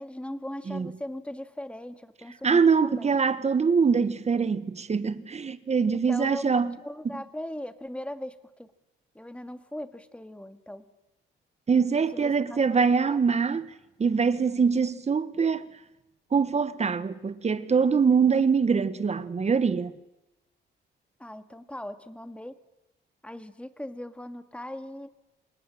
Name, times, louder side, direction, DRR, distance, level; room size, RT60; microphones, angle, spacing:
voice 1, 0.0-3.1 5.9-8.7 9.2-10.9 12.1-13.2 21.2-22.6 23.2-25.1, left 1 dB, 5° left, 1.9 m, -39 dB
voice 2, 2.4-6.8 7.1-7.2 11.7-13.7 14.0-15.7 16.3-19.9, right 5 dB, 35° right, 1.3 m, -23 dB
27.0 x 19.5 x 7.7 m
cardioid pair, 90°, 20 cm